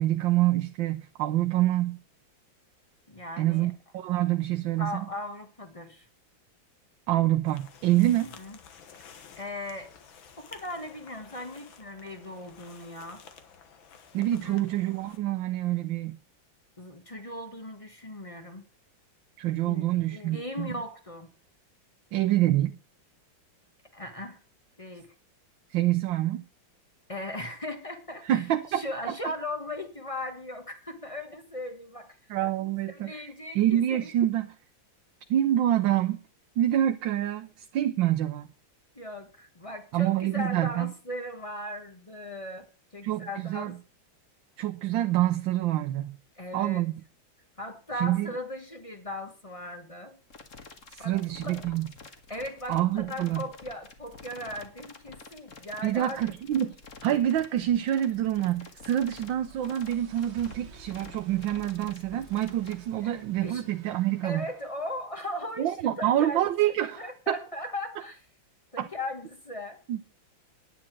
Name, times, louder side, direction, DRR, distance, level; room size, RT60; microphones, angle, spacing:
voice 1, 0.0-2.0 3.4-5.1 7.1-8.3 14.1-16.2 19.4-20.8 22.1-22.8 25.7-26.4 28.2-29.1 32.3-34.5 35.3-36.2 36.6-38.5 39.9-40.9 43.0-43.7 44.6-46.1 46.5-46.9 47.9-48.3 50.9-51.9 52.7-53.4 55.8-56.7 57.0-64.4 65.6-67.3 68.8-68.9 69.9-70.1, right 13 dB, 75° right, 1.5 m, -26 dB
voice 2, 3.1-3.7 4.8-6.1 8.3-8.6 9.4-9.9 10.4-13.2 14.4-14.6 16.8-18.6 19.6-21.3 23.9-24.4 24.8-25.1 27.1-28.4 28.7-32.1 32.8-34.1 38.9-42.7 42.9-43.8 46.3-46.8 47.6-50.2 51.0-51.7 52.3-56.2 63.0-63.1 63.4-63.6 64.2-66.4 67.0-68.2 68.7-69.8, left 1 dB, 20° left, 1.3 m, -38 dB
sound 1, 7.4-15.2, left 7 dB, 75° left, 2.1 m, -52 dB
sound 2, 50.3-62.7, left 4 dB, 40° left, 1.9 m, -48 dB
sound 3, 58.8-64.8, right 6 dB, 40° right, 1.1 m, -52 dB
10.0 x 9.8 x 6.1 m
omnidirectional pair, 2.2 m